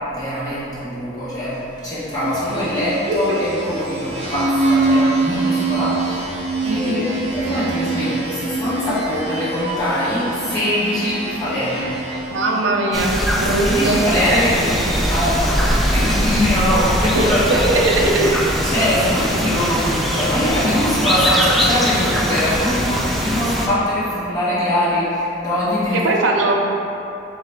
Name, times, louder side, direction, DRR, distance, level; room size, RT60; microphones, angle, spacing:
voice 1, 0.1-1.6 1.8-6.3 6.7-11.9 13.6-17.8 18.2-26.0, left 1 dB, 20° left, -11 dB, 1.2 m, -22 dB
sound 1, 2.0-12.9, right 2 dB, 30° right, 0.7 m, -24 dB
voice 2, 3.1-3.4 6.6-7.0 12.3-14.0 17.1-18.3 25.9-26.5, right 2 dB, 75° right, 0 dB, 0.5 m, -20 dB
sound 2, 12.9-23.7, equal, ahead, 0.3 m, -21 dB
3.7 x 3.2 x 3.2 m, 2.9 s
head